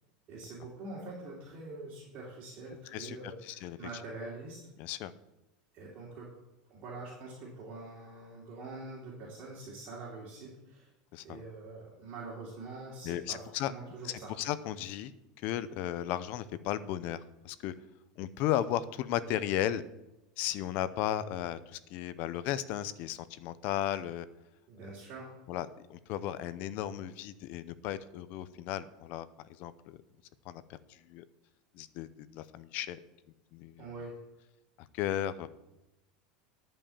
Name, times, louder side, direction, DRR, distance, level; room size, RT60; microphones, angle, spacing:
voice 1, 0.3-4.6 5.7-6.3 6.7-10.9 11.2-13.4 13.6-14.3 24.7-25.3 33.8-34.2, right 3 dB, 35° right, -6 dB, 3.0 m, -45 dB
voice 2, 2.9-3.8 4.8-5.1 11.1-11.4 13.0-13.7 14.0-15.1 15.4-17.7 18.2-19.8 20.4-24.3 25.5-29.3 29.6-30.0 30.5-31.2 31.7-33.0 33.5-33.8 34.8-35.5, left 12 dB, 45° left, 15 dB, 0.6 m, -35 dB
11.0 x 5.5 x 7.2 m, 0.95 s
supercardioid pair, 155°, 4 cm